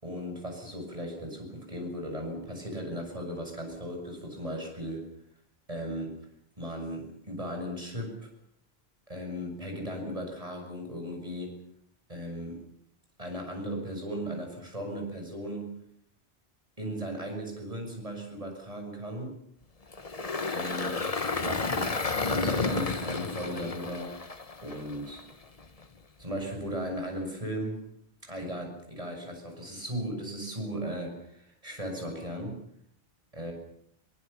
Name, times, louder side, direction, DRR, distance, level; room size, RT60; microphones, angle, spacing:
voice 1, 0.0-5.1 5.7-6.2 6.6-8.3 9.1-11.6 12.1-12.6 13.2-15.7 16.8-19.4 20.5-22.0 22.3-24.2 24.6-25.2 26.2-27.8 28.2-32.6 33.3-33.5, equal, 35° right, 2 dB, 7.2 m, -37 dB
Engine, 19.9-25.2, left 3 dB, 35° left, 1.3 m, -31 dB
23.5 x 20.0 x 7.1 m, 0.72 s
omnidirectional pair, 1.0 m